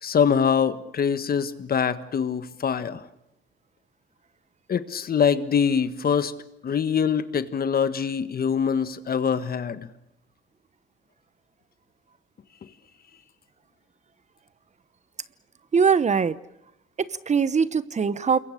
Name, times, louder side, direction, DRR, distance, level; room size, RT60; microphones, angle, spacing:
voice 1, 0.0-3.0 4.7-6.3 6.6-9.9, left 7 dB, 50° left, 12 dB, 1.6 m, -24 dB
voice 2, 15.7-16.4 17.0-18.4, right 6 dB, 35° right, 16 dB, 1.0 m, -22 dB
28.0 x 22.5 x 6.7 m, 0.82 s
cardioid pair, 90°, 20 cm